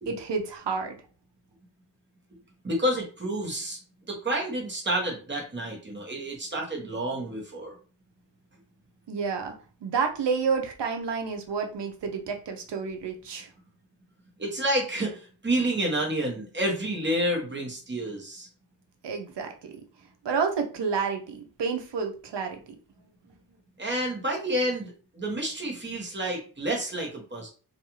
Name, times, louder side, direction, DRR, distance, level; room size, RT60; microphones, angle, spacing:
voice 1, 0.1-0.9 9.1-9.5 9.8-13.5 19.0-19.7 20.2-22.6, right 5 dB, 85° right, 4 dB, 0.7 m, -29 dB
voice 2, 2.6-3.8 4.1-7.8 14.4-18.5 23.8-27.5, right 1 dB, 25° right, 0 dB, 1.0 m, -29 dB
2.5 x 2.3 x 2.9 m, 0.37 s
wide cardioid pair, 95°, 41 cm